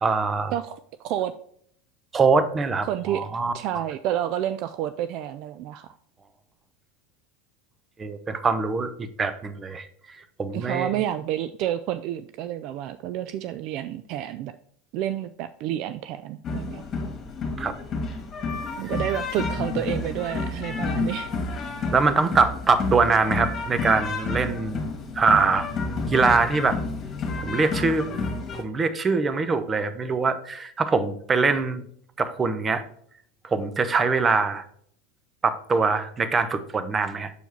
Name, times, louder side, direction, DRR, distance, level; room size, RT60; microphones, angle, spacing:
voice 1, 0.0-0.5 2.1-3.5 8.0-9.9 10.4-10.9 17.6-17.7 21.9-24.8 25.1-25.7 26.1-26.8 27.4-28.0 28.5-31.8 32.2-32.8 33.4-34.6 35.4-37.3, right 4 dB, 25° right, 11 dB, 0.8 m, -23 dB
voice 2, 0.5-1.3 2.9-3.2 3.5-5.9 10.5-14.5 14.9-16.8 18.8-21.3, right 12 dB, 55° right, 12 dB, 0.3 m, -29 dB
sound 1, 16.4-28.6, left 3 dB, 35° left, 1.9 m, -30 dB
6.9 x 4.6 x 4.4 m, 0.64 s
hypercardioid pair, 90°, 0 cm